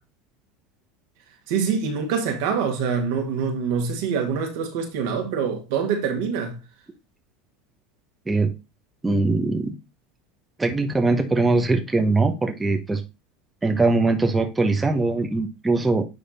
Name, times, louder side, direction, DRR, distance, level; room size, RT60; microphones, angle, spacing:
voice 1, 1.5-6.6, right 6 dB, 65° right, 2.0 m, -25 dB
voice 2, 9.0-9.7 10.6-13.0 13.6-16.0, right 3 dB, 15° right, 1.2 m, -21 dB
9.8 x 3.3 x 4.3 m
hypercardioid pair, 80°, 0 cm